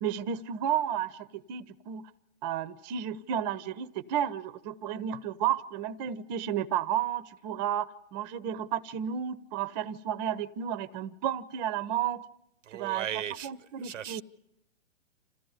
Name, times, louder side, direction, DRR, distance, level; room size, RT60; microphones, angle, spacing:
voice 1, 0.0-2.1 2.4-12.2 12.7-14.2, right 9 dB, 35° right, 0.8 m, -32 dB
voice 2, 12.7-13.5 13.8-14.2, right 10 dB, 75° right, 0.8 m, -36 dB
28.0 x 14.5 x 9.6 m
hypercardioid pair, 140°, 38 cm